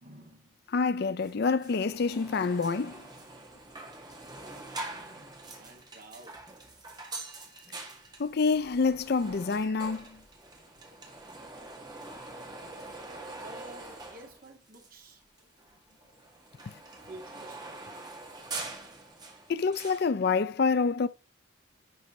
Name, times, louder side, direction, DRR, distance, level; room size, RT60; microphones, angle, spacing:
voice 1, 0.0-0.7 3.8-3.9 4.2-6.4 13.4-15.2 17.1-17.8, right 1 dB, 50° right, 2.0 m, -52 dB
voice 2, 0.7-3.0 8.2-10.1 19.5-21.1, left 4 dB, 55° left, 0.4 m, -27 dB
sound 1, 1.2-1.3 1.6-15.1 15.4-20.1, right 2 dB, 20° right, 1.9 m, -44 dB
11.0 x 5.3 x 3.2 m
head